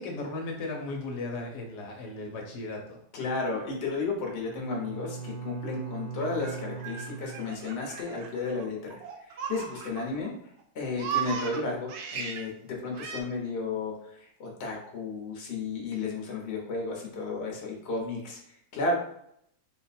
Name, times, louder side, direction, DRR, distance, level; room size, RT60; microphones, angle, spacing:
voice 1, 0.0-3.0, left 2 dB, 75° left, 1 dB, 1.3 m, -36 dB
voice 2, 3.1-18.9, left 3 dB, 45° left, -1 dB, 1.1 m, -33 dB
Bowed string instrument, 4.4-8.0, right 5 dB, 45° right, 0.8 m, -40 dB
Laughter, 6.2-10.3 10.6-12.5 13.0-13.2, right 7 dB, 75° right, 1.1 m, -37 dB
4.0 x 2.2 x 4.1 m, 0.72 s
omnidirectional pair, 1.8 m